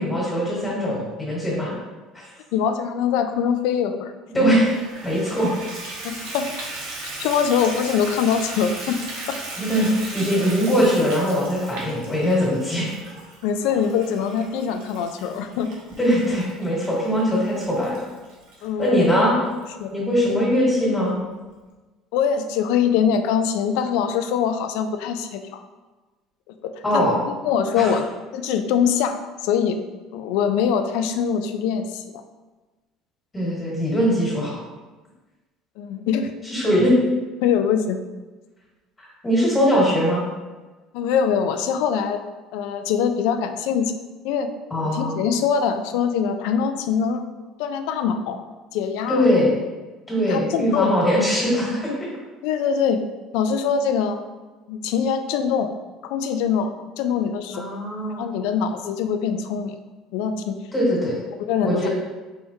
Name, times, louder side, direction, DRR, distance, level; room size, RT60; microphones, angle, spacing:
voice 1, 0.0-1.7 2.1-2.3 4.3-4.8 5.0-5.5 9.6-13.0 16.0-18.0 18.8-19.3 19.9-21.2 26.8-27.2 27.7-27.9 33.3-34.6 36.4-36.9 39.2-40.2 44.7-45.2 49.1-49.5 50.1-51.9 57.5-58.3 60.7-61.1 61.6-61.9, equal, 15° left, -5 dB, 1.5 m, -21 dB
voice 2, 2.5-4.5 6.0-6.7 7.0-9.0 9.3-9.4 13.4-15.7 18.6-19.1 19.8-19.9 22.1-25.6 26.6-27.0 27.4-28.0 28.3-29.8 30.1-32.2 35.8-36.3 37.4-38.0 40.9-42.2 42.5-43.9 44.2-44.5 44.8-47.2 47.6-48.4 48.7-49.2 50.2-50.9 52.4-53.0 53.3-54.2 54.7-55.7 56.0-57.7 58.2-59.7 60.1-60.5 61.4-61.9, left 7 dB, 75° left, 8 dB, 0.3 m, -23 dB
Water tap faucet / Bathtub (filling or washing), 4.7-19.0 19.6-19.7 20.2-20.3 20.6-20.7, right 2 dB, 90° right, 1.0 m, -37 dB
4.4 x 3.5 x 2.7 m, 1.2 s
cardioid pair, 170°, 0 cm